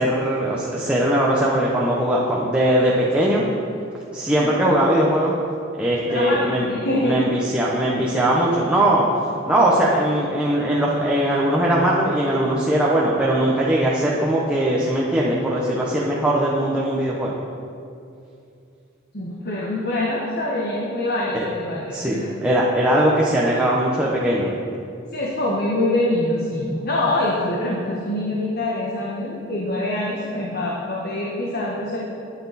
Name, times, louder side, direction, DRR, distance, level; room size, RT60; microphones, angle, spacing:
voice 1, 0.0-3.4 4.1-5.4 5.8-6.6 7.0-9.1 9.5-17.3 21.3-21.4 21.9-24.5, right 1 dB, 5° right, -5 dB, 1.0 m, -20 dB
voice 2, 6.1-7.2 19.1-22.3 25.1-32.0, left 1 dB, 50° left, -3 dB, 1.4 m, -24 dB
12.0 x 9.4 x 4.2 m, 2.5 s
head